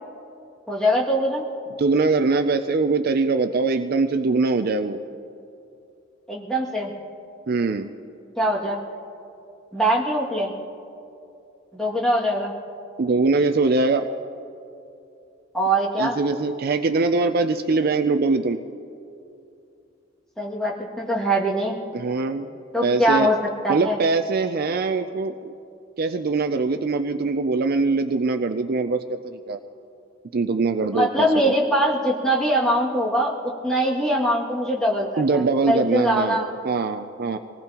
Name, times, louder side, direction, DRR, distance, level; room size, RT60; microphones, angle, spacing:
voice 1, 0.7-1.4 6.3-6.9 8.4-8.8 9.7-10.5 11.7-12.5 15.5-16.2 20.4-21.8 22.7-23.4 23.6-24.0 30.9-36.5, right 1 dB, 5° left, -5 dB, 2.2 m, -22 dB
voice 2, 1.8-5.0 7.5-7.9 13.0-14.1 16.0-18.6 21.9-22.5 22.8-23.3 23.7-25.5 26.0-29.6 30.3-31.5 35.2-37.4, right 3 dB, 50° right, 8 dB, 0.5 m, -22 dB
25.0 x 19.0 x 3.0 m, 2.6 s
head